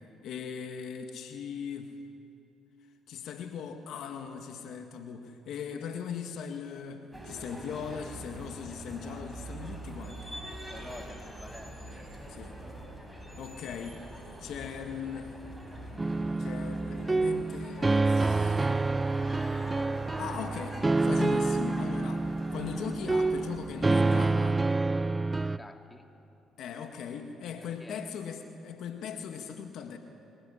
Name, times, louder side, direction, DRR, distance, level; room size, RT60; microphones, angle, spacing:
voice 1, 0.2-1.9 3.1-10.4 12.3-12.6 13.4-14.1 14.4-15.3 16.4-18.7 20.2-24.6 26.6-30.0, left 7 dB, 70° left, 5 dB, 1.8 m, -39 dB
sound 1, 7.1-24.3, right 1 dB, ahead, 7.0 m, -44 dB
voice 2, 10.7-11.8 25.6-26.1 27.6-28.1, left 1 dB, 15° left, 3 dB, 3.2 m, -48 dB
sound 2, 16.0-25.6, right 3 dB, 20° right, 0.7 m, -28 dB
24.5 x 20.0 x 10.0 m, 2.6 s
supercardioid pair, 65°, 0 cm